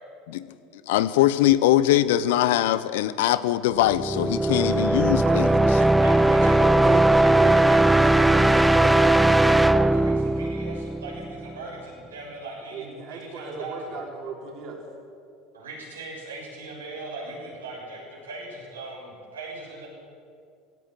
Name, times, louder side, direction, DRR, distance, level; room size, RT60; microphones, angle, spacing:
voice 1, 0.9-5.5, left 13 dB, 70° left, 15 dB, 0.8 m, -22 dB
sound 1, 3.8-11.5, right 1 dB, 5° right, 0.5 m, -19 dB
voice 2, 5.2-9.3 12.7-14.8, right 5 dB, 55° right, 0 dB, 5.3 m, -35 dB
voice 3, 6.0-13.9 15.5-19.9, right 2 dB, 85° right, -3 dB, 6.8 m, -38 dB
17.5 x 17.5 x 9.1 m, 2.3 s
hypercardioid pair, 75°, 0 cm